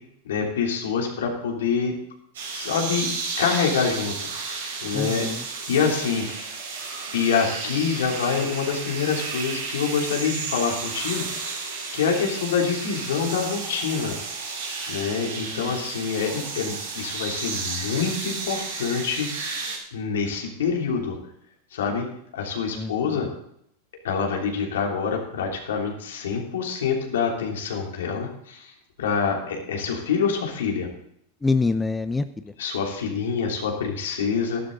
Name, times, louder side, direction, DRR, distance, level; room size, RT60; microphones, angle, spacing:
voice 1, 0.2-1.9 2.5-3.1 3.4-4.1 4.5-5.3 5.7-6.3 7.1-11.2 11.9-14.2 14.9-19.3 19.9-21.2 21.7-22.0 22.3-23.3 24.0-28.7 29.0-30.9 32.6-34.6, left 6 dB, 75° left, 0 dB, 3.2 m, -26 dB
sound 1, 2.3-19.8, right 4 dB, 80° right, 5.6 m, -32 dB
voice 2, 4.9-5.4 15.2-15.9 22.7-23.3 31.4-32.5, left 3 dB, 10° left, 11 dB, 0.6 m, -27 dB
12.5 x 12.0 x 4.0 m, 0.72 s
hypercardioid pair, 100°, 0 cm